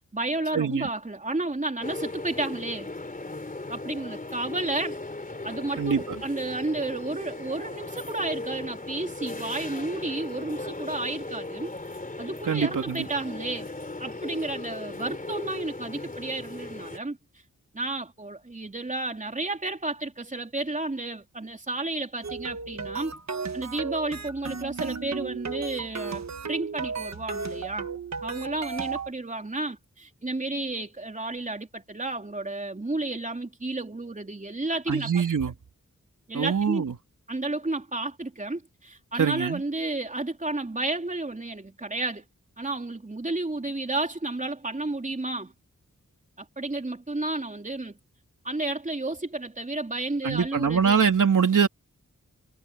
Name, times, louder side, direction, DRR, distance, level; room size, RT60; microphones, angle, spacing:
voice 1, 0.0-2.9 3.7-5.0 5.4-11.7 12.2-13.7 14.0-17.2 17.7-23.2 23.5-27.9 28.2-35.1 36.3-36.9 37.3-42.2 42.6-45.5 46.4-48.0 48.4-51.0, right 2 dB, 25° right, 3.6 m, -32 dB
voice 2, 0.5-0.9 5.8-6.0 12.5-13.1 34.9-35.5 36.3-37.0 39.2-39.6 50.2-51.7, right 6 dB, 90° right, 3.4 m, -23 dB
sound 1, 1.8-17.0, left 2 dB, 25° left, 3.5 m, -37 dB
sound 2, 22.2-29.1, right 5 dB, 60° right, 1.4 m, -34 dB
wide cardioid pair, 95°, 30 cm